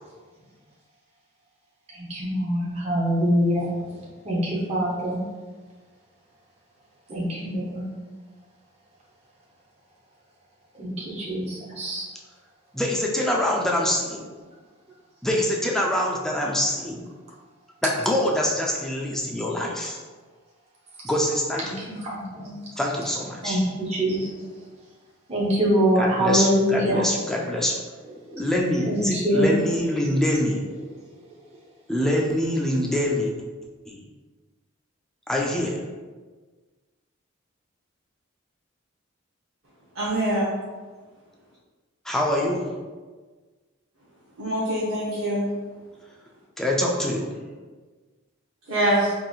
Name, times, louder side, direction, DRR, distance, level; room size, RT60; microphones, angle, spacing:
voice 1, 2.1-3.7 4.2-5.2 7.1-7.9 10.8-12.0 22.0-22.6 23.4-24.3 25.3-27.0 28.8-29.5, equal, 30° right, -6 dB, 0.8 m, -24 dB
voice 2, 12.7-14.2 15.2-17.0 17.8-20.0 21.0-21.8 22.8-23.6 26.0-27.8 28.4-30.6 31.9-33.3 33.9-34.0 35.3-35.8 42.1-42.7 46.6-47.3, left 1 dB, ahead, -2 dB, 0.3 m, -25 dB
voice 3, 39.9-40.5 44.4-45.5 48.7-49.1, right 1 dB, 85° right, -8 dB, 0.8 m, -24 dB
3.9 x 2.7 x 2.4 m, 1.4 s
head